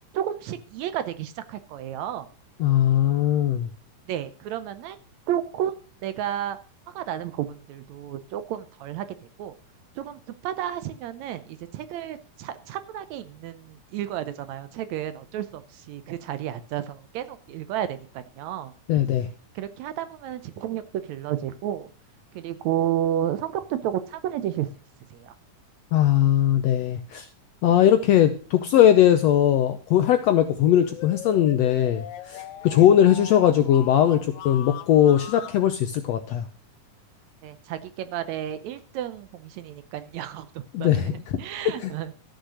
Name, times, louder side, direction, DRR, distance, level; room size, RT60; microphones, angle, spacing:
voice 1, 0.1-2.3 4.1-5.0 5.3-6.6 6.9-9.5 10.0-18.7 19.5-21.9 22.3-24.7 25.1-25.3 37.4-42.2, right 11 dB, 75° right, 12 dB, 1.7 m, -32 dB
voice 2, 2.6-3.7 18.9-19.3 25.9-27.3 27.6-36.5 40.7-41.4 41.8-41.9, left 11 dB, 85° left, 9 dB, 1.5 m, -20 dB
sound 1, 30.6-35.6, left 10 dB, 70° left, 2.0 m, -40 dB
13.0 x 6.5 x 6.3 m, 0.42 s
omnidirectional pair, 3.8 m